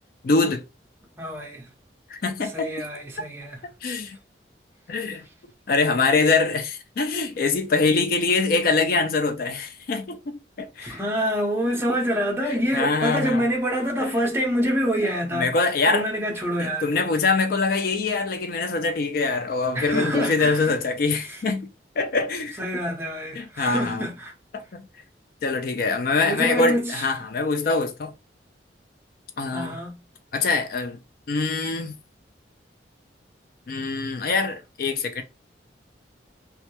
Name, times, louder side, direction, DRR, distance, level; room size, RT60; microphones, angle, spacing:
voice 1, 0.2-0.6 2.1-2.9 3.8-4.2 4.9-5.2 5.7-11.0 12.4-13.5 14.0-14.1 15.3-16.1 16.6-21.7 22.0-22.8 23.3-24.1 24.5-24.8 25.4-28.1 29.4-29.8 30.3-31.0 31.3-31.9 33.7-35.2, left 3 dB, 50° left, 0.4 m, -24 dB
voice 2, 1.2-1.7 2.5-3.6 10.8-16.9 19.7-20.7 21.3-21.4 22.6-24.3 26.2-27.1 29.5-30.0, equal, 15° right, 0.7 m, -26 dB
2.3 x 2.2 x 2.8 m
head